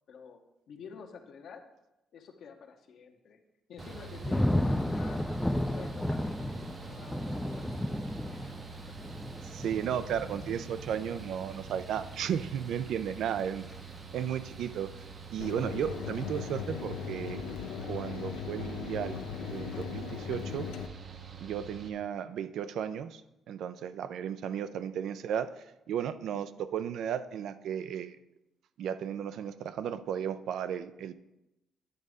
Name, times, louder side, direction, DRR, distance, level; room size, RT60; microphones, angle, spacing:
voice 1, 0.1-0.4 0.7-1.6 2.1-3.4 3.7-5.2 5.7-8.7 13.1-13.2 23.9-24.1, left 6 dB, 70° left, 5 dB, 0.9 m, -50 dB
Thunder / Rain, 3.8-14.7 15.1-15.6, left 1 dB, 5° left, 0.4 m, -34 dB
Mechanical fan, 3.8-21.9, right 6 dB, 55° right, 0.7 m, -47 dB
voice 2, 9.5-13.7 14.1-14.9 15.3-17.4 17.9-19.2 19.5-20.7 21.4-23.2 23.5-25.5 25.9-28.2 28.8-31.1, right 9 dB, 75° right, 13 dB, 0.4 m, -34 dB
Mechanisms, 15.4-20.9, left 8 dB, 85° left, 0.5 m, -38 dB
9.4 x 4.1 x 4.9 m, 0.92 s
cardioid pair, 90°, 0 cm